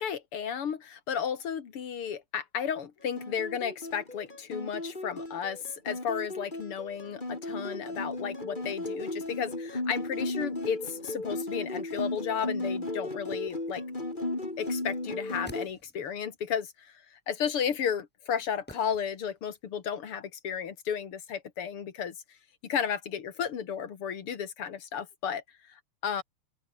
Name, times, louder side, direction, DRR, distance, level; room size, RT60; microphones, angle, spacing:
voice 1, 0.0-13.8 14.6-22.2 22.6-25.4 25.7-26.2, left 7 dB, 85° left, 2.9 m, -33 dB
sound 1, 3.2-15.7, left 2 dB, 20° left, 4.0 m, -35 dB
sound 2, 15.1-16.3 18.7-19.6 19.8-19.9, equal, 5° left, 7.2 m, -51 dB
open air
omnidirectional pair, 2.4 m